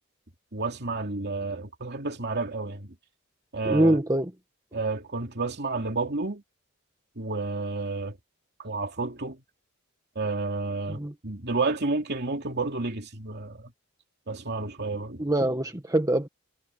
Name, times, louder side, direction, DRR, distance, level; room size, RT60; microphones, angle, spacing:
voice 1, 0.5-2.9 3.5-4.0 4.7-6.4 7.2-8.2 8.6-9.4 10.1-13.7 14.3-15.3, right 3 dB, 50° right, 2.7 m, -30 dB
voice 2, 3.6-4.3 10.9-11.1 15.2-16.3, right 1 dB, 15° right, 1.5 m, -24 dB
head